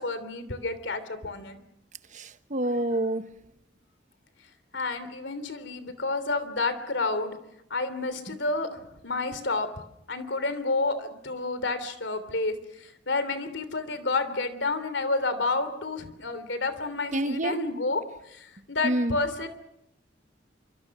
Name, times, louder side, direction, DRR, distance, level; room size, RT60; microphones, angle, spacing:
voice 1, 0.0-1.6 4.7-7.4 7.7-9.7 10.1-19.5, left 3 dB, 75° left, 3.2 m, -30 dB
voice 2, 2.1-3.4 17.1-17.6 18.8-19.2, right 1 dB, 45° right, 1.1 m, -28 dB
27.0 x 25.0 x 6.1 m
head